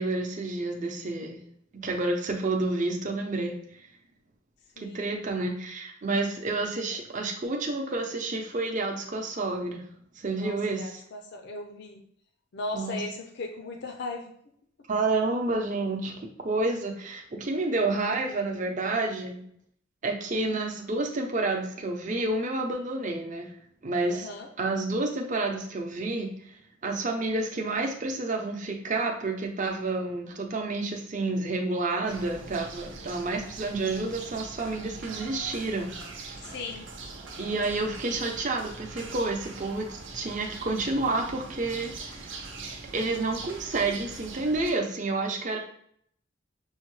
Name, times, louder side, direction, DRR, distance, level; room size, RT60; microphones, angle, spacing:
voice 1, 0.0-1.4 1.7-3.6 4.8-9.8 10.2-11.0 12.7-13.0 14.9-19.4 20.0-23.5 23.8-24.3 24.6-26.3 26.8-35.9 36.2-36.4 37.4-42.3 42.9-45.6, right 2 dB, 40° right, 2 dB, 0.7 m, -29 dB
voice 2, 4.8-5.2 6.9-7.0 10.3-12.0 12.5-14.3 24.0-24.5 36.4-36.9, left 2 dB, 60° left, 3 dB, 0.5 m, -38 dB
sound 1, 32.1-44.7, right 3 dB, 70° right, 0.8 m, -42 dB
6.3 x 2.2 x 3.1 m, 0.65 s
head